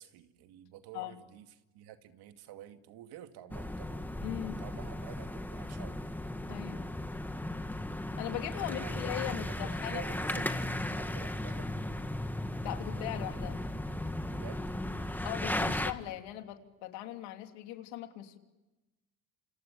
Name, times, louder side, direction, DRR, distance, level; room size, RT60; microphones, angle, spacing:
voice 1, 0.0-1.5 1.7-4.0 4.6-6.2 8.6-11.7 14.3-14.7, right 12 dB, 75° right, 7 dB, 2.3 m, -50 dB
sound 1, 3.5-15.9, left 1 dB, 5° left, 1.8 m, -36 dB
voice 2, 4.2-4.6 6.5-6.9 8.2-10.0 10.3-10.5 10.9-11.0 12.6-13.6 15.2-18.4, left 13 dB, 90° left, 5 dB, 3.2 m, -39 dB
29.0 x 28.5 x 7.2 m, 1.1 s
cardioid pair, 110°, 39 cm